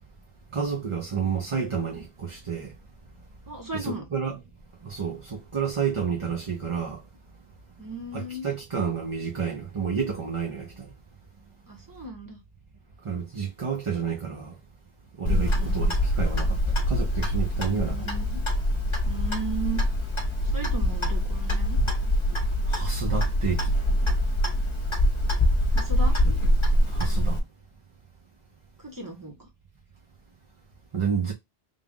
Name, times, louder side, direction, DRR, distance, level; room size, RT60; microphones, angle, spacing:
voice 1, 0.5-2.7 3.7-4.4 4.8-7.0 8.1-10.9 13.0-14.5 15.2-16.6 16.9-18.0 22.7-23.7 26.9-27.4 30.9-31.3, right 6 dB, 35° right, 0.6 m, -30 dB
voice 2, 3.5-4.0 7.8-8.5 11.7-12.4 15.3-15.8 17.7-18.4 19.0-19.8 20.5-21.8 25.7-26.1 28.8-29.5, right 3 dB, 20° right, 1.2 m, -36 dB
Clock, 15.2-27.4, equal, 30° left, 1.0 m, -24 dB
3.6 x 2.5 x 3.6 m
omnidirectional pair, 1.1 m